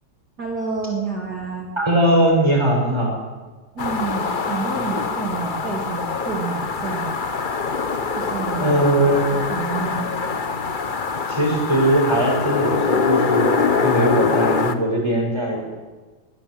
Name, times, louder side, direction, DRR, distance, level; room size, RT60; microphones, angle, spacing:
voice 1, 0.4-1.7 3.7-7.2 8.1-8.8 9.3-10.1, right 4 dB, 60° right, 0 dB, 3.3 m, -29 dB
voice 2, 1.8-3.1 8.6-9.4 11.3-15.6, right 1 dB, 15° right, 0 dB, 6.4 m, -20 dB
sound 1, 3.8-14.7, left 5 dB, 35° left, 1.1 m, -24 dB
22.0 x 16.5 x 7.9 m, 1.3 s
omnidirectional pair, 1.9 m